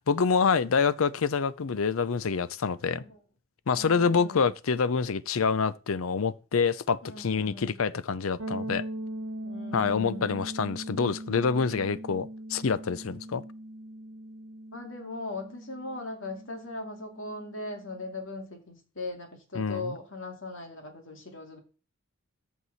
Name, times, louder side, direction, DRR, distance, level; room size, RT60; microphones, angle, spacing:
voice 1, 0.1-3.0 3.7-8.9 9.7-13.4 19.6-19.9, left 5 dB, 80° left, 0.6 m, -26 dB
voice 2, 2.9-3.2 3.8-4.5 7.0-7.8 9.4-10.4 14.7-21.6, left 2 dB, 65° left, 2.5 m, -39 dB
sound 1, 8.4-18.1, right 1 dB, 85° right, 1.5 m, -40 dB
14.0 x 4.7 x 4.1 m
head